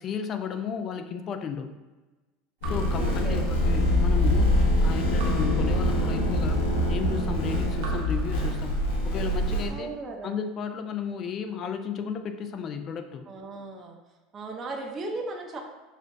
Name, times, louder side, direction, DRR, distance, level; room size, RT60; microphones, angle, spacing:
voice 1, 0.0-1.8 2.7-6.6 6.9-9.9 10.2-13.3, left 6 dB, 35° left, 8 dB, 0.4 m, -34 dB
sound 1, 2.6-9.7, left 1 dB, 90° left, 1.0 m, -24 dB
Raindrop / Drip, 2.6-4.0 5.2-6.6 7.8-9.2, right 3 dB, 65° right, 0.9 m, -44 dB
voice 2, 2.9-3.5 9.7-10.4 13.3-14.0 14.3-15.6, right 2 dB, 30° right, 1 dB, 0.6 m, -36 dB
6.3 x 2.4 x 2.6 m, 1.2 s
supercardioid pair, 135°, 0 cm